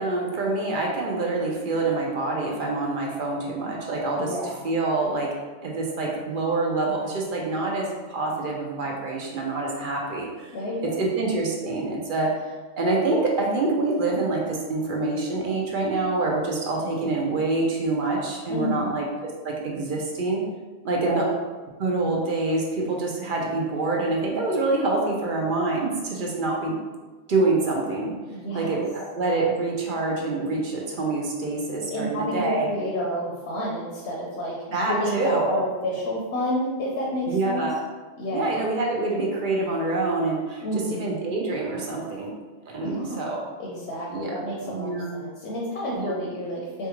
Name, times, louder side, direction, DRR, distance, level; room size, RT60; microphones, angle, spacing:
voice 1, 0.0-4.3 4.6-5.3 5.6-10.6 10.8-12.3 12.8-19.1 19.4-20.4 20.8-21.3 21.8-26.7 27.3-28.1 28.5-32.7 34.7-35.6 37.3-37.8 38.3-42.3 42.7-43.4 44.1-44.3 44.7-45.2 45.9-46.1, right 2 dB, 55° right, -1 dB, 0.8 m, -26 dB
voice 2, 4.2-4.6 10.5-11.1 18.5-18.9 20.9-21.3 28.3-28.8 31.9-37.7 38.2-38.5 40.6-41.1 42.8-43.3 43.6-46.9, equal, 80° left, -4 dB, 1.0 m, -30 dB
4.3 x 2.3 x 3.0 m, 1.3 s
omnidirectional pair, 1.1 m